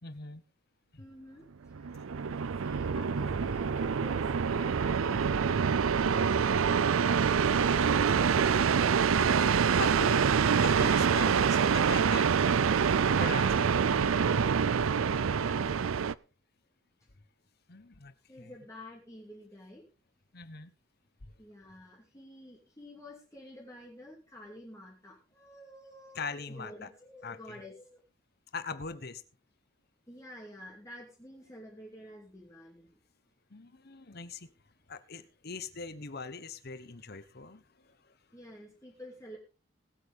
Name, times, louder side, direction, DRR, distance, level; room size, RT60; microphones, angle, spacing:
voice 1, 0.0-0.4 0.9-1.0 9.7-12.4 13.2-13.7 17.7-18.5 20.3-20.7 21.2-21.3 26.1-26.9 27.2-27.6 28.5-29.2 33.5-34.5 34.9-38.1, left 4 dB, 50° left, 1.1 m, -41 dB
voice 2, 1.0-2.1 2.5-8.5 13.4-14.0 14.4-16.1 18.3-19.9 21.4-28.0 30.1-33.0 38.3-39.4, left 1 dB, 15° left, 2.7 m, -50 dB
sound 1, 1.7-16.1, right 6 dB, 90° right, 0.5 m, -26 dB
20.5 x 8.4 x 3.6 m
head